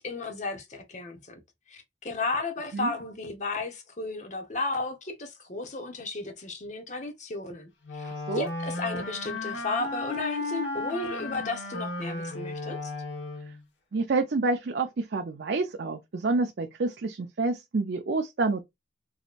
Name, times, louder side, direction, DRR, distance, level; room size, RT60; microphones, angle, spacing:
voice 1, 0.0-1.4 1.7-12.9, left 3 dB, 40° left, 0.9 m, -34 dB
Wind instrument woodwind instrument, 7.8-13.6, left 2 dB, 80° left, 1.3 m, -34 dB
voice 2, 8.0-8.5 13.9-18.6, right 3 dB, 65° right, 0.5 m, -28 dB
4.8 x 3.0 x 2.4 m
head